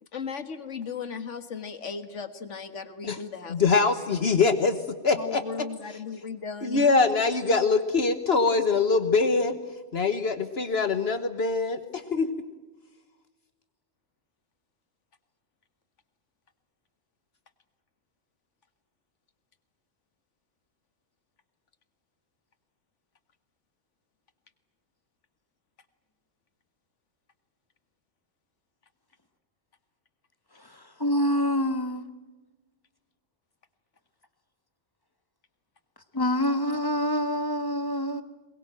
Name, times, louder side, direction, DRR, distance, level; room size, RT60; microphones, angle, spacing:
voice 1, 0.0-3.6 5.1-6.9, left 5 dB, 90° left, 11 dB, 1.9 m, -36 dB
voice 2, 3.5-5.4 6.6-9.6 9.9-12.3, left 4 dB, 60° left, 10 dB, 1.4 m, -23 dB
voice 3, 30.5-32.1 36.1-38.2, left 1 dB, 20° left, 9 dB, 1.5 m, -26 dB
22.5 x 21.5 x 9.0 m, 1.2 s
omnidirectional pair, 1.2 m